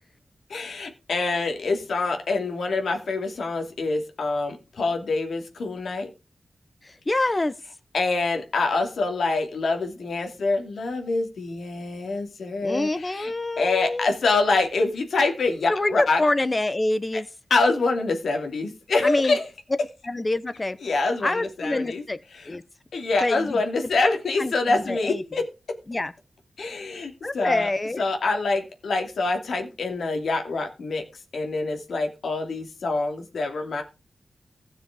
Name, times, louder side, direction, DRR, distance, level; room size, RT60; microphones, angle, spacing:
voice 1, 0.5-6.1 7.9-13.3 13.6-16.2 17.5-19.5 20.8-22.0 22.9-25.4 26.6-27.7 28.0-31.0 31.3-33.8, left 3 dB, 85° left, 2.7 m, -25 dB
voice 2, 6.8-7.5 12.6-14.1 15.7-17.3 19.0-19.4 20.1-20.8 21.2-22.2 22.4-22.6 23.2-23.9 24.4-25.2 25.9-26.1 27.2-28.0, left 2 dB, 25° left, 1.1 m, -26 dB
16.0 x 6.7 x 5.0 m
wide cardioid pair, 85°, 0 cm